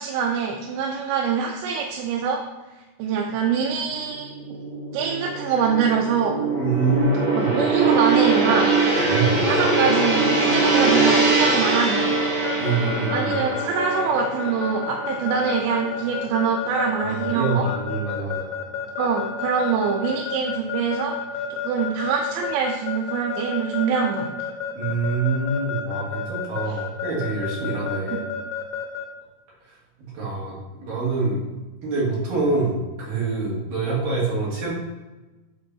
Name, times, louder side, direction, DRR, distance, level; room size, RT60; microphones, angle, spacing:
voice 1, 0.0-2.4 3.0-4.4 4.9-6.4 7.3-8.7 9.4-12.1 13.1-17.7 19.0-21.2 21.6-24.3 26.7-26.8 28.1-28.2, right 6 dB, 85° right, 0 dB, 2.9 m, -24 dB
Gong, 3.9-16.4 16.7-17.0, right 3 dB, 70° right, 0.9 m, -23 dB
voice 2, 6.6-7.5 9.0-9.4 12.6-13.3 17.1-18.5 24.7-28.2 30.1-30.6 30.8-31.4 31.8-34.8, right 3 dB, 55° right, -6 dB, 3.8 m, -25 dB
Keyboard (musical) / Alarm, 12.4-29.1, left 9 dB, 85° left, 2.9 m, -30 dB
8.6 x 3.7 x 5.5 m, 1.1 s
omnidirectional pair, 4.9 m